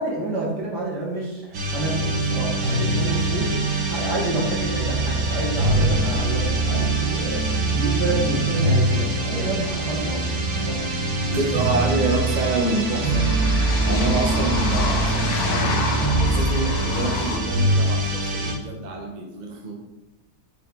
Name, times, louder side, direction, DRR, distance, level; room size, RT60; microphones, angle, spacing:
voice 1, 0.0-10.9, right 2 dB, 70° right, -3 dB, 2.4 m, -29 dB
sound 1, 1.5-18.5, right 2 dB, 90° right, 2.1 m, -23 dB
sound 2, 10.9-11.0 11.1-17.4, left 5 dB, 65° left, 1.2 m, -30 dB
voice 2, 11.3-13.2 13.8-19.7, right 2 dB, 30° right, 1 dB, 1.0 m, -27 dB
8.6 x 5.5 x 3.8 m, 1.0 s
omnidirectional pair, 1.9 m